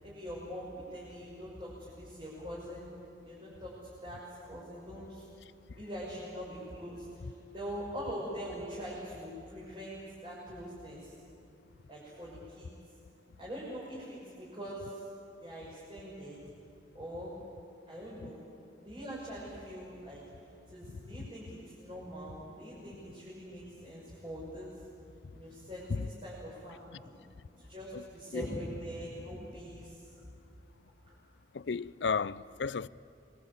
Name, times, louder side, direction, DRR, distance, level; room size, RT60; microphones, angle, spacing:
voice 1, 0.0-2.9 3.2-5.3 5.7-11.1 11.9-12.7 13.4-15.0 15.4-16.4 16.9-17.3 17.9-18.4 18.8-20.2 20.7-24.7 25.3-27.1 27.6-30.1 31.1-31.2, equal, 30° right, 6.6 m, -43 dB
voice 2, 20.9-21.3 25.9-26.1 26.9-27.0 27.9-28.1 28.3-28.5 31.5-32.9, left 5 dB, 80° left, 0.5 m, -34 dB
27.0 x 22.0 x 8.7 m
head